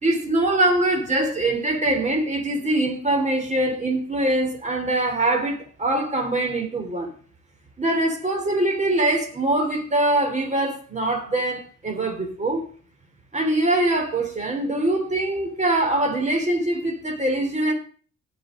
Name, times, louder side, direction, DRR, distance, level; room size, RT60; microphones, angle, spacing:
voice 1, 0.0-7.1 7.8-12.6 13.3-17.7, right 1 dB, 25° right, 3.2 m, -23 dB
18.5 x 6.2 x 3.7 m
cardioid pair, 90°, 30 cm